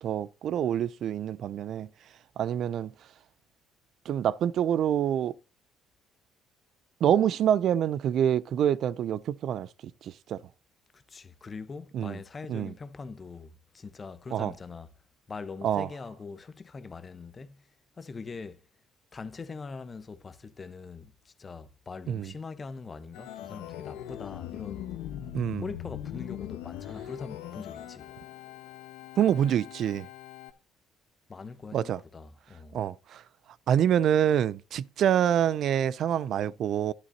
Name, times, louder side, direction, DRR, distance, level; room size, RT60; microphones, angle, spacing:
voice 1, 0.0-1.9 2.4-2.9 4.1-5.3 7.0-9.7 10.0-10.4 11.9-12.2 12.5-12.7 14.3-14.5 15.6-15.9 22.1-22.3 25.3-25.6 29.2-30.1 31.7-32.0 32.7-33.2 33.7-36.9, right 9 dB, 60° right, 0.4 m, -26 dB
voice 2, 10.9-14.9 15.3-17.7 18.0-18.6 19.1-24.9 25.2-25.3 25.6-28.1 31.3-32.8, left 4 dB, 35° left, 1.0 m, -42 dB
Organ, 23.1-30.5, left 11 dB, 80° left, 1.1 m, -41 dB
11.5 x 11.0 x 2.8 m
supercardioid pair, 65°, 0 cm